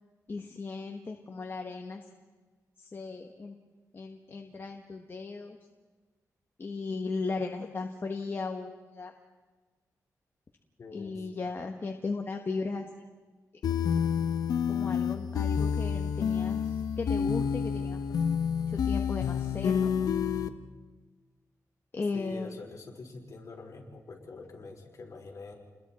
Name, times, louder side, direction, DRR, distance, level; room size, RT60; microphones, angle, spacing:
voice 1, 0.3-2.0 2.8-3.6 3.9-5.6 6.6-9.1 10.9-12.9 14.7-18.0 18.7-19.9 21.9-22.6, left 3 dB, 35° left, 3 dB, 1.3 m, -36 dB
voice 2, 10.8-11.2 22.1-25.5, left 3 dB, 55° left, 0 dB, 4.3 m, -45 dB
sound 1, 13.6-20.5, left 7 dB, 80° left, 0.9 m, -29 dB
30.0 x 21.5 x 4.3 m, 1.3 s
wide cardioid pair, 110°, 6 cm